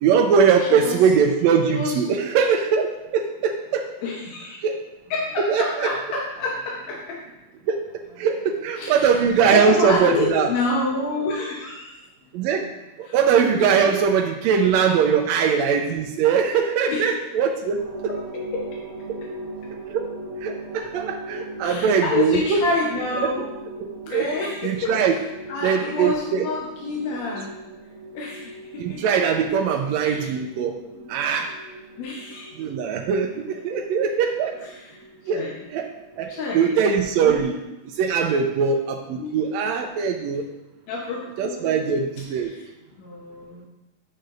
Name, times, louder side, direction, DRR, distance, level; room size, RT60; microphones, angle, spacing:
voice 1, 0.0-2.9 3.1-3.8 4.6-4.8 5.5-5.9 7.7-7.8 8.2-10.5 12.3-12.7 13.0-18.1 19.1-19.2 19.9-20.1 20.4-22.6 23.2-23.3 24.1-24.3 24.6-25.2 25.6-26.5 28.8-30.8 31.1-31.5 32.6-34.6 35.3-35.4 35.7-35.9 36.2-37.6 37.9-40.4 41.4-42.5, right 6 dB, 80° right, 2 dB, 1.7 m, -21 dB
voice 2, 0.6-1.0 1.7-2.0 4.0-4.6 5.1-7.2 8.8-11.9 13.0-13.2 13.7-14.0 16.8-17.1 18.1-18.7 19.2-19.3 21.6-23.5 24.1-25.2 25.5-27.5 28.1-29.0 30.0-30.3 30.9-31.2 32.0-32.5 34.6-35.6 36.3-36.8 37.2-37.6 39.2-39.3 40.9-41.7 42.4-42.6 43.0-43.7, left 3 dB, 70° left, -4 dB, 2.2 m, -28 dB
sound 1, 17.8-37.5, right 1 dB, 25° right, 2.6 m, -40 dB
10.0 x 6.5 x 2.6 m, 0.96 s
omnidirectional pair, 3.3 m